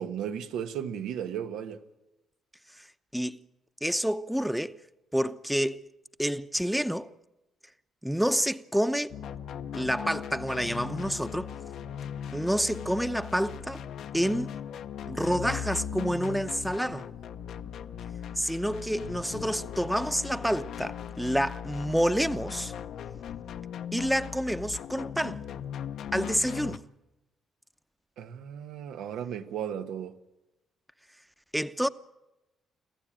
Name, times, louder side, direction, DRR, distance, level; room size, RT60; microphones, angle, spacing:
voice 1, 0.0-1.8 28.2-30.1, right 9 dB, 85° right, 1.3 m, -35 dB
voice 2, 3.8-4.8 5.1-5.8 6.2-7.1 8.0-9.1 9.7-11.5 12.3-13.8 14.1-14.5 15.1-17.1 18.4-22.7 23.9-25.4 26.1-26.8 31.5-31.9, equal, ahead, 0.8 m, -28 dB
sound 1, 9.1-26.8, left 8 dB, 70° left, 0.9 m, -38 dB
25.5 x 15.5 x 9.0 m
cardioid pair, 90°, 0 cm